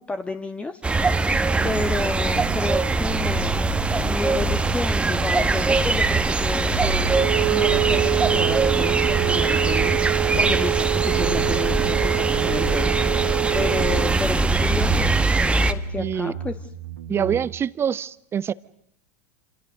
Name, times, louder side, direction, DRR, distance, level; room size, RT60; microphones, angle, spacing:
voice 1, 0.0-1.4 1.6-3.7 4.0-15.2 15.7-16.6 17.1-17.5, left 3 dB, 15° left, 8 dB, 1.7 m, -31 dB
sound 1, 0.8-15.7, right 3 dB, 15° right, 1.6 m, -22 dB
sound 2, 1.6-17.5, right 5 dB, 85° right, 1.9 m, -35 dB
Wind instrument woodwind instrument, 7.1-14.2, right 19 dB, 60° right, 2.0 m, -25 dB
voice 2, 16.0-16.3 17.1-18.5, right 8 dB, 30° right, 18 dB, 1.0 m, -25 dB
28.5 x 27.5 x 6.6 m, 0.73 s
hypercardioid pair, 85°, 8 cm